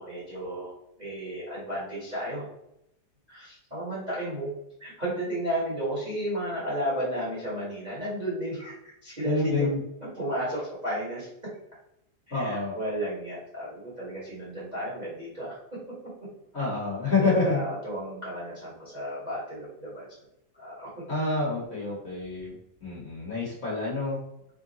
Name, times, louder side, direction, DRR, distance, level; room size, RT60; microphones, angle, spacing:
voice 1, 0.0-2.4 3.3-4.5 4.8-8.8 9.0-9.7 10.0-11.5 12.3-16.1 17.2-20.1 20.5-21.0, right 1 dB, 30° right, -8 dB, 1.0 m, -33 dB
voice 2, 9.2-9.8 12.3-12.7 16.5-17.6 21.1-22.6 22.8-24.2, left 3 dB, 40° left, -6 dB, 1.3 m, -27 dB
3.8 x 2.3 x 3.9 m, 0.81 s
omnidirectional pair, 2.1 m